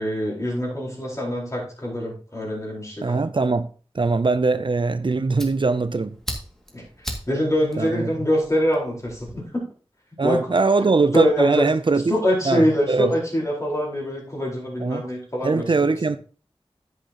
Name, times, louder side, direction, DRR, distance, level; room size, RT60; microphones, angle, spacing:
voice 1, 0.0-3.2 6.7-9.7 10.2-10.5 11.1-11.7 12.1-15.7, equal, 30° left, 4.6 m, -24 dB
voice 2, 3.0-3.7 3.9-6.2 7.8-8.1 10.2-12.2 12.5-13.1 14.8-15.0 15.4-16.2, right 3 dB, 55° right, 0.5 m, -21 dB
Fire, 4.8-9.4, equal, 5° left, 2.2 m, -39 dB
9.9 x 8.5 x 3.0 m
wide cardioid pair, 55°, 10 cm